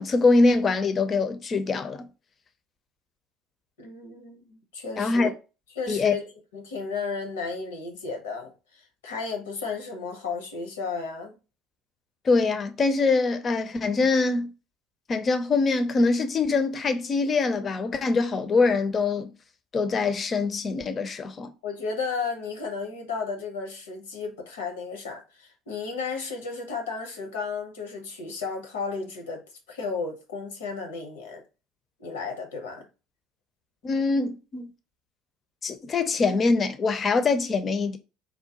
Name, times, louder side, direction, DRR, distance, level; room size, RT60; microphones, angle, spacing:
voice 1, 0.0-2.1 5.0-5.3 5.9-6.1 12.2-14.5 15.1-19.3 19.7-21.5 33.8-34.7 35.6-38.0, left 3 dB, 35° left, 0.6 m, -23 dB
voice 2, 3.8-5.3 5.8-6.3 6.5-11.4 21.6-29.4 29.7-31.4 32.0-32.9, left 4 dB, 75° left, 0.9 m, -33 dB
3.8 x 2.1 x 2.9 m
figure-of-eight pair, 65°, 0 cm